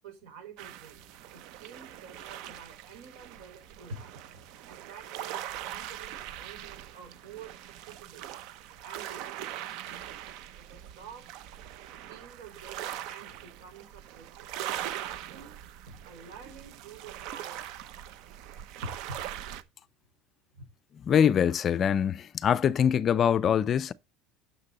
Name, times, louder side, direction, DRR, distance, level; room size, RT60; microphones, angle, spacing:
voice 1, 0.0-1.0 1.3-4.2 4.6-8.3 8.8-10.2 10.5-11.5 12.0-14.5 14.8-15.5 15.9-18.0 18.8-19.2 20.5-20.7, right 4 dB, 80° right, 5.1 m, -48 dB
sound 1, 0.6-19.6, right 12 dB, 65° right, 0.8 m, -41 dB
voice 2, 21.1-23.9, left 8 dB, 30° left, 0.4 m, -24 dB
9.7 x 6.7 x 4.1 m
cardioid pair, 150°, 0 cm